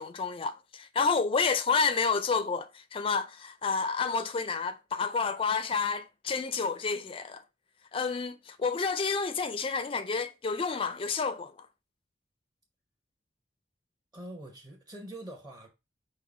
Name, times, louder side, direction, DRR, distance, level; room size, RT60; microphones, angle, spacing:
voice 1, 0.0-7.4 7.9-11.7, left 5 dB, 30° left, 0.4 m, -30 dB
voice 2, 14.1-15.7, right 1 dB, 20° right, 0.9 m, -44 dB
5.4 x 2.1 x 4.8 m
head